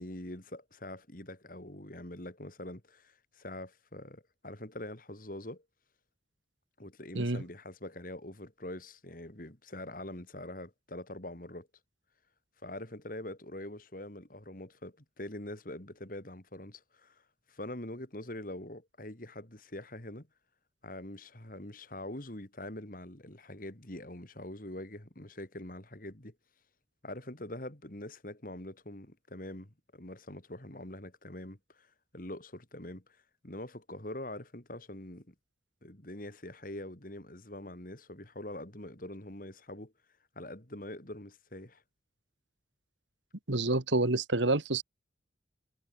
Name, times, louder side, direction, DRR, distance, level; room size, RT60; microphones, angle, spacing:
voice 1, 0.0-5.6 6.8-11.7 12.6-17.2 17.5-20.3 20.8-26.3 27.0-31.9 32.1-33.0 33.4-35.3 35.8-39.9 40.3-41.8, left 1 dB, 50° left, 3.2 m, -44 dB
voice 2, 43.5-44.8, right 2 dB, 85° right, 1.9 m, -28 dB
head